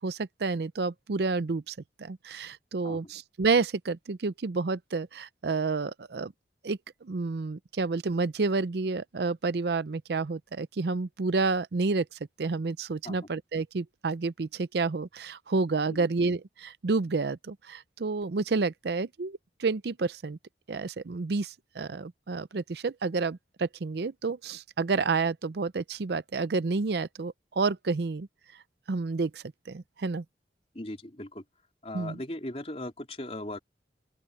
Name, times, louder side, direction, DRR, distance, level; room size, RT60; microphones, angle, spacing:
voice 1, 0.0-6.3 6.6-12.1 12.4-20.4 20.7-28.3 28.9-30.2 31.9-32.2, right 4 dB, 65° right, 0.5 m, -30 dB
voice 2, 30.7-31.4 31.8-33.6, left 1 dB, 35° left, 3.3 m, -38 dB
open air
head